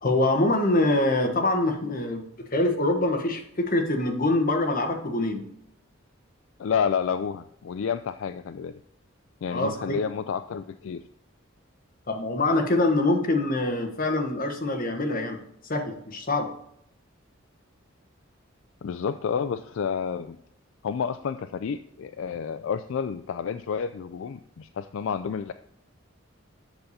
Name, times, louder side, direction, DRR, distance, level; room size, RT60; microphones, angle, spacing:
voice 1, 0.0-5.4 9.5-10.0 12.1-15.4 15.7-16.5, left 2 dB, 45° left, 3 dB, 1.3 m, -24 dB
voice 2, 6.6-8.8 9.4-11.0 18.8-20.4 20.8-25.5, left 6 dB, 70° left, 11 dB, 0.3 m, -30 dB
8.0 x 6.7 x 4.2 m, 0.72 s
head